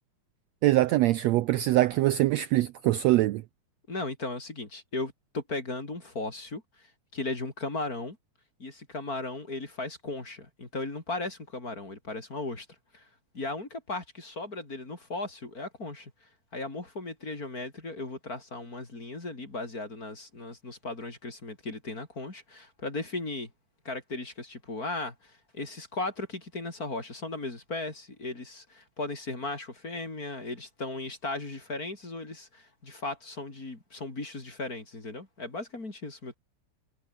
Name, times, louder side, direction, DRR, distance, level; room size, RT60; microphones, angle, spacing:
voice 1, 0.6-3.4, right 16 dB, 75° right, 1.7 m, -23 dB
voice 2, 3.9-8.2 8.6-12.7 12.9-13.1 13.3-23.5 23.8-36.4, left 2 dB, 25° left, 4.5 m, -37 dB
omnidirectional pair, 3.6 m